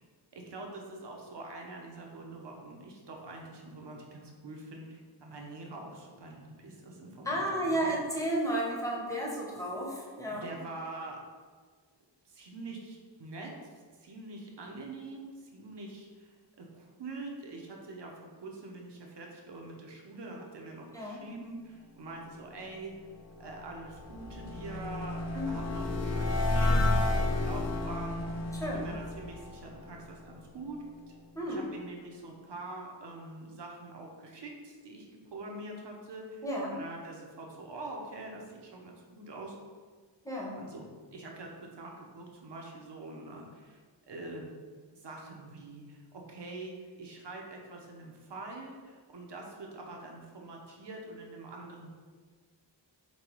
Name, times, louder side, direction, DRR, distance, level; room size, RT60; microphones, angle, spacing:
voice 1, 0.3-8.0 10.3-11.2 12.2-23.0 23.4-30.8 31.5-36.4 36.7-39.6 40.6-43.8 44.1-44.5 44.9-51.9, right 2 dB, 65° right, 0 dB, 0.8 m, -45 dB
voice 2, 7.2-10.5 20.9-21.2 25.3-25.6 28.5-28.9 31.3-31.6 36.4-36.8 40.2-40.6, right 1 dB, 5° left, -4 dB, 0.8 m, -33 dB
sound 1, 23.2-30.4, left 2 dB, 40° left, 0.5 m, -31 dB
5.4 x 2.2 x 3.0 m, 1.5 s
wide cardioid pair, 100°, 45 cm